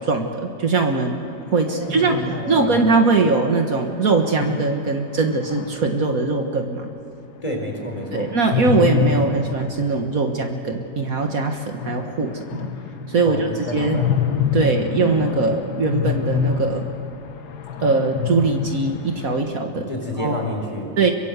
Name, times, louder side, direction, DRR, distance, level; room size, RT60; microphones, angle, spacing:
voice 1, 0.0-6.9 8.1-12.7 13.1-14.0 14.5-16.9 17.8-19.9 20.2-20.4 21.0-21.1, right 3 dB, 60° right, 4 dB, 1.8 m, -21 dB
sound 1, 1.2-3.1 4.2-6.1 8.3-10.7 10.9-11.0 11.3-11.4 11.6-19.4, left 7 dB, 80° left, 1.7 m, -27 dB
voice 2, 1.6-2.8 7.4-8.3 13.3-14.1 19.7-20.9, left 1 dB, 20° left, 1 dB, 4.4 m, -29 dB
24.5 x 23.5 x 8.1 m, 2.8 s
omnidirectional pair, 1.7 m